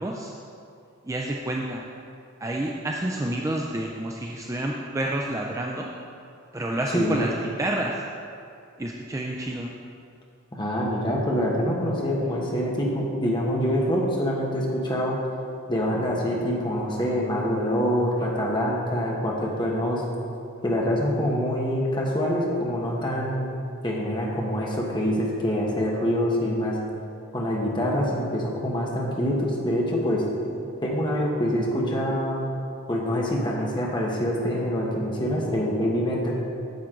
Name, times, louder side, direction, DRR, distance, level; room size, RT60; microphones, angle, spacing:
voice 1, 0.0-0.4 1.0-1.9 2.4-5.9 6.5-7.3 7.6-8.0 8.8-9.7 30.5-30.7, right 1 dB, 15° right, -1 dB, 0.3 m, -29 dB
voice 2, 6.9-7.2 10.5-15.2 15.7-20.0 20.6-23.5 23.8-26.8 27.3-30.2 30.8-32.4 32.9-36.4, equal, 20° left, -3 dB, 1.1 m, -25 dB
9.2 x 7.2 x 3.8 m, 2.5 s
head